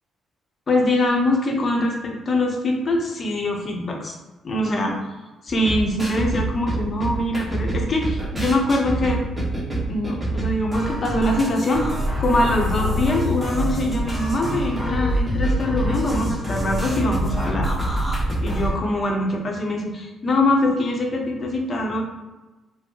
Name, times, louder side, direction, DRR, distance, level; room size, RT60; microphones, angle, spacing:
voice 1, 0.7-4.2 4.4-5.0 5.4-9.2 9.9-17.7 18.4-22.0, left 1 dB, 40° left, 1 dB, 0.7 m, -23 dB
sound 1, 5.5-18.8, right 1 dB, 10° right, 1.1 m, -25 dB
4.3 x 2.0 x 2.9 m, 1.1 s
cardioid pair, 90°, 0 cm